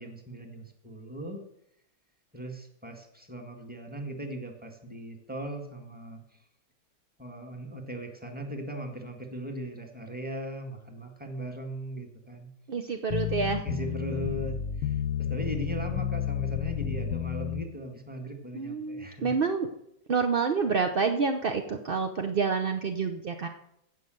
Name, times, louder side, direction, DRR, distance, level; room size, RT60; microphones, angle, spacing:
voice 1, 0.0-1.4 2.3-6.2 7.2-12.5 13.6-19.4, right 1 dB, 5° right, 3 dB, 1.7 m, -38 dB
voice 2, 12.7-13.6 18.5-19.7 20.1-23.5, right 5 dB, 55° right, 5 dB, 0.6 m, -28 dB
sound 1, 13.1-17.6, left 10 dB, 85° left, 1.5 m, -31 dB
15.5 x 5.7 x 7.8 m, 0.78 s
omnidirectional pair, 2.0 m